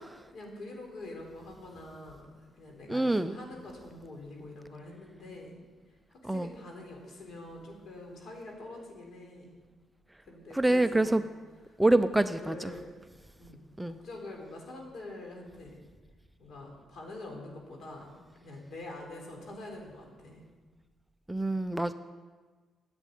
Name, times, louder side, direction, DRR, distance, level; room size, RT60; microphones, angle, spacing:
voice 1, 0.3-2.3 2.6-5.6 6.1-9.5 10.2-11.2 11.9-13.0 13.4-15.8 16.4-20.4, left 2 dB, 60° left, 0 dB, 3.8 m, -45 dB
voice 2, 2.9-3.4 6.2-6.5 10.5-11.2 11.8-12.7 13.8-14.0 21.3-21.9, right 2 dB, 5° right, 11 dB, 0.4 m, -26 dB
11.0 x 8.3 x 9.3 m, 1.4 s
cardioid pair, 110°, 0 cm